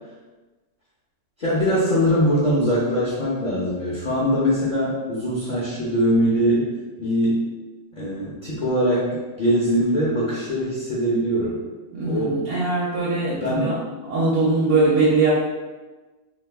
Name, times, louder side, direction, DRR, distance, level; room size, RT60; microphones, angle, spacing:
voice 1, 1.4-6.7 7.0-7.4 7.9-11.6 12.0-12.4 13.4-13.8, equal, 50° left, -8 dB, 0.5 m, -22 dB
voice 2, 11.9-13.7 14.1-15.3, right 3 dB, 75° right, -8 dB, 1.2 m, -21 dB
2.9 x 2.3 x 3.4 m, 1.2 s
omnidirectional pair, 1.6 m